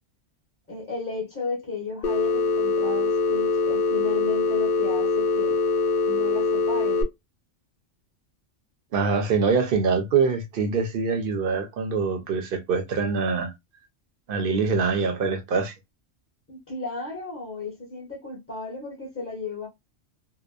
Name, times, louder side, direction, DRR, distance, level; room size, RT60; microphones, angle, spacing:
voice 1, 0.7-5.6 6.0-7.0 16.5-19.7, left 4 dB, 10° left, 0.9 m, -34 dB
Telephone, 2.0-7.0, left 4 dB, 60° left, 0.6 m, -23 dB
voice 2, 8.9-13.5 14.3-15.7, right 5 dB, 55° right, 0.7 m, -24 dB
2.8 x 2.0 x 2.3 m
omnidirectional pair, 1.2 m